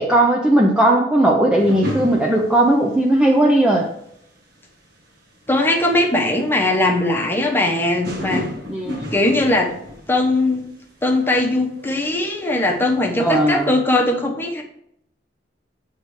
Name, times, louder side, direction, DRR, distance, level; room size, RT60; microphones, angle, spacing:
voice 1, 0.0-3.9 8.7-8.9 13.2-13.7, right 1 dB, 5° right, -1 dB, 0.6 m, -17 dB
sound 1, 1.6-3.5 3.7-4.1 4.9-5.1 5.4-5.5 5.7-5.8 6.2-6.3 6.5-6.6 8.0-10.6 10.8-11.0 11.3-13.0 13.3-13.7, left 1 dB, 60° right, 1.4 m, -32 dB
voice 2, 5.5-8.5 9.1-9.7 10.1-10.7 11.0-14.6, left 2 dB, 15° left, 0 dB, 1.0 m, -19 dB
7.9 x 3.3 x 4.7 m, 0.73 s
head